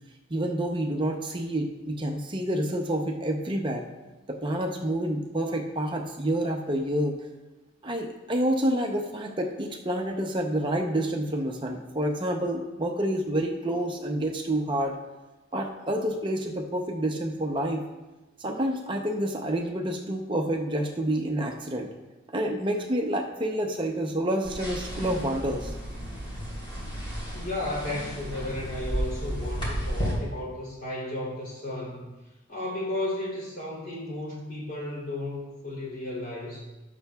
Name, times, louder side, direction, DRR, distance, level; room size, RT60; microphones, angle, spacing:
voice 1, 0.3-3.9 4.3-7.2 7.8-15.0 15.5-17.8 18.4-21.9 22.3-25.7, right 1 dB, 25° right, 2 dB, 0.7 m, -28 dB
sound 1, 24.4-30.1, equal, 25° left, 3.3 m, -33 dB
voice 2, 27.3-32.1 32.5-36.7, left 1 dB, 45° left, -5 dB, 3.1 m, -34 dB
12.5 x 8.4 x 2.3 m, 1.1 s
head